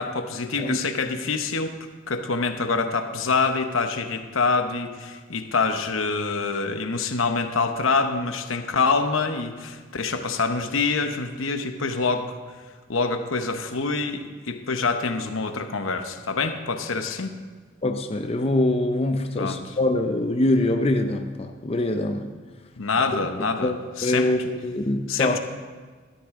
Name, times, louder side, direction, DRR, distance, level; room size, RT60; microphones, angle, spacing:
voice 1, 0.0-1.8 2.1-12.3 12.9-17.3 19.4-19.6 22.8-23.7 24.0-24.3 25.1-25.4, left 4 dB, 80° left, 7 dB, 0.9 m, -26 dB
voice 2, 17.8-22.3 23.6-25.4, left 1 dB, 30° left, 5 dB, 0.6 m, -24 dB
13.0 x 13.0 x 3.7 m, 1.5 s
head